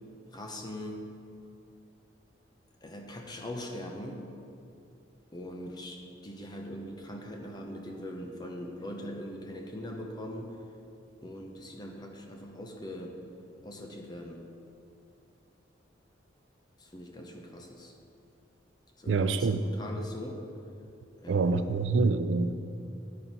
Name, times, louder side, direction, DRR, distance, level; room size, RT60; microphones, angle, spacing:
voice 1, 0.3-1.0 2.8-4.2 5.3-10.6 11.2-13.1 13.6-14.4 16.8-17.9 19.0-20.4 21.2-21.7, equal, 20° left, 1 dB, 0.7 m, -41 dB
voice 2, 19.1-19.6 21.3-22.5, right 4 dB, 80° right, 11 dB, 0.4 m, -26 dB
11.0 x 4.5 x 5.3 m, 2.5 s
head